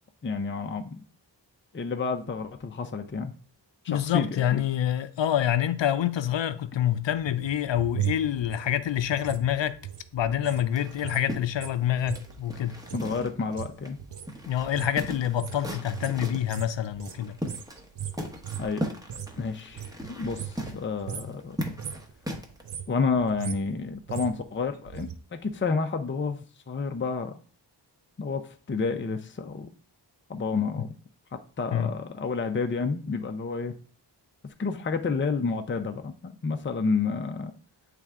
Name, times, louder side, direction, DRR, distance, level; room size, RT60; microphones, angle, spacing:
voice 1, 0.2-1.0 1.7-3.3 3.8-4.6 12.9-14.0 18.6-18.9 19.4-21.6 22.9-27.4 28.2-29.7 30.3-30.9 31.3-33.7 34.4-37.5, left 4 dB, 30° left, 0.6 m, -30 dB
voice 2, 3.9-9.8 10.1-12.8 14.5-17.4 31.7-31.9, left 11 dB, 85° left, 0.6 m, -27 dB
sound 1, 7.2-10.7 10.9-19.4 19.7-20.8 21.0-21.4 21.7-22.1 22.5-25.1 25.4-25.5, right 10 dB, 70° right, 0.7 m, -38 dB
sound 2, 10.7-13.5 13.8-13.9 14.3-16.5 17.1-17.9 18.1-22.6, equal, 10° right, 1.0 m, -37 dB
8.6 x 3.3 x 3.6 m
wide cardioid pair, 85°, 43 cm